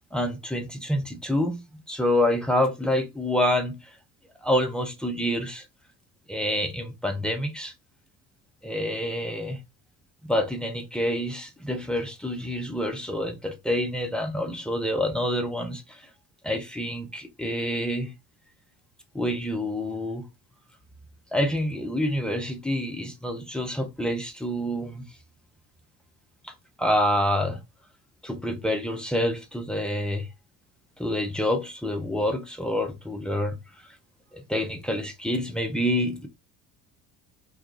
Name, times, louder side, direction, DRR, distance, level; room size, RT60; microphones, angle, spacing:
voice 1, 0.1-1.6 1.9-3.9 4.4-5.6 6.3-7.7 8.6-9.6 10.2-16.1 16.4-18.1 19.1-20.3 21.3-25.1 26.4-26.5 26.8-27.6 28.2-30.3 31.0-33.6 34.3-36.3, left 1 dB, ahead, 0.5 m, -27 dB
2.2 x 2.2 x 3.1 m
figure-of-eight pair, 55°, 47 cm